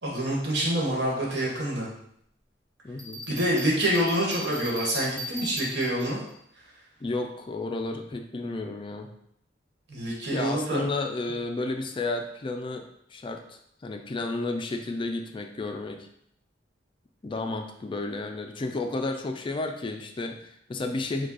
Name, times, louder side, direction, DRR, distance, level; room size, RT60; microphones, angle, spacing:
voice 1, 0.0-1.9 3.3-6.2 9.9-10.8, right 1 dB, 65° right, -3 dB, 1.3 m, -26 dB
voice 2, 2.8-3.2 7.0-9.1 10.3-16.1 17.2-21.3, left 2 dB, 30° left, 5 dB, 0.3 m, -32 dB
Bell, 3.0-6.3, left 1 dB, 20° right, 1.0 m, -38 dB
5.0 x 2.3 x 4.0 m, 0.72 s
head